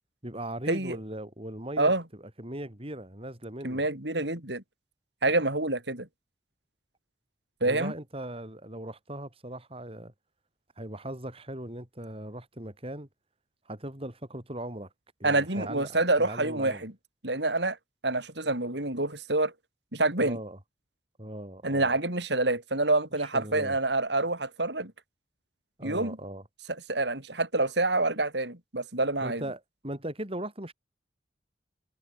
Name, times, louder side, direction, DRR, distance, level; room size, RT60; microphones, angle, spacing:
voice 1, 0.2-1.9 2.4-3.9 7.6-10.1 10.8-13.1 13.7-14.9 15.2-16.8 20.2-20.6 21.2-21.9 23.2-23.8 25.8-26.4 29.2-30.7, right 1 dB, 30° right, 6.0 m, -39 dB
voice 2, 3.6-4.6 5.2-6.1 7.6-7.9 15.2-16.9 17.2-17.8 18.0-19.5 19.9-20.4 21.6-24.9 25.8-26.2 26.9-29.4, right 2 dB, 70° right, 6.4 m, -27 dB
head